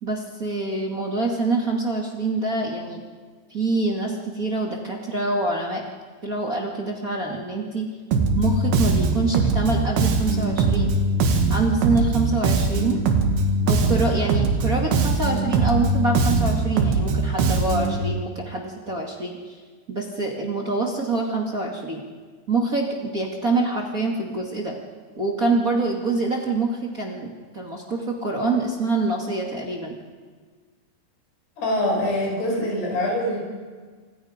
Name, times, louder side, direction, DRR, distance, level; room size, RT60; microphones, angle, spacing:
voice 1, 0.0-3.0 3.5-5.8 6.2-7.9 8.4-10.9 11.5-13.0 13.7-19.5 19.9-22.0 22.5-24.7 25.2-30.0, right 3 dB, 30° right, -1 dB, 1.6 m, -25 dB
Bass guitar, 8.1-18.0, right 3 dB, 75° right, 3.9 m, -21 dB
voice 2, 31.6-33.4, left 1 dB, 70° left, -1 dB, 8.6 m, -24 dB
27.5 x 26.0 x 5.2 m, 1.5 s
omnidirectional pair, 4.9 m